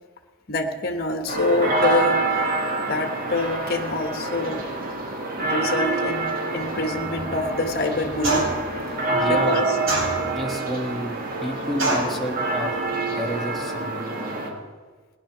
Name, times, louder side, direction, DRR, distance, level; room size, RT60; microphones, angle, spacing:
voice 1, 0.5-2.5 2.9-4.7 5.3-8.5 8.9-9.6, left 2 dB, 50° left, 5 dB, 1.4 m, -26 dB
sound 1, 1.3-14.5, right 3 dB, 45° right, 1.9 m, -27 dB
sound 2, 8.2-8.7 9.9-10.5 11.8-12.2, right 2 dB, 80° right, 4.4 m, -24 dB
voice 2, 9.1-9.7 10.3-12.8 13.1-14.6, equal, ahead, -2 dB, 1.5 m, -31 dB
17.0 x 10.5 x 6.1 m, 1.4 s
head